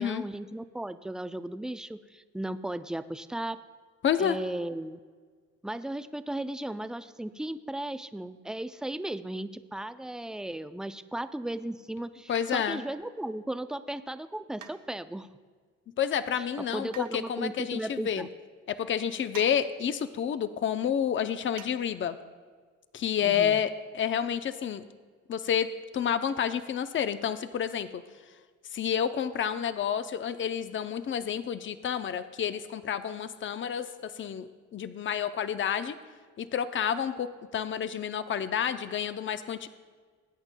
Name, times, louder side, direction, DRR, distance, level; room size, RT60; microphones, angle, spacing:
voice 1, 0.0-3.6 4.2-5.0 5.6-15.3 16.4-16.5 16.7-18.3 23.2-23.6, right 1 dB, ahead, 11 dB, 0.4 m, -36 dB
voice 2, 4.0-4.4 12.3-12.8 16.0-18.3 18.7-22.2 22.9-24.8 25.3-28.0 28.7-36.0 36.4-39.7, left 8 dB, 40° left, 11 dB, 0.6 m, -29 dB
sound 1, 12.3-12.9 14.6-15.3 16.9-17.2 19.3-19.6 19.8-19.9 21.6-21.8 22.1-22.2, right 8 dB, 80° right, 0.8 m, -47 dB
20.0 x 8.8 x 2.2 m, 1.5 s
cardioid pair, 90°, 30 cm